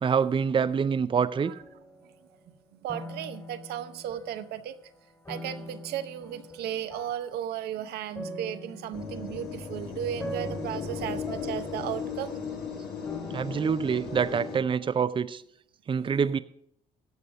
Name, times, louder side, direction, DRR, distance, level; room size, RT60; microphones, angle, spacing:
voice 1, 0.0-1.5 13.3-15.4 15.9-16.4, right 6 dB, 30° right, 13 dB, 0.5 m, -26 dB
sound 1, 1.1-2.6 2.9-4.7 5.2-15.1, equal, 20° left, 2.1 m, -44 dB
voice 2, 2.7-4.8 5.3-12.3, right 10 dB, 75° right, 10 dB, 0.7 m, -35 dB
sound 2, 8.9-14.6, left 5 dB, 70° left, 2.2 m, -36 dB
15.5 x 5.5 x 6.2 m, 0.72 s
supercardioid pair, 60°, 17 cm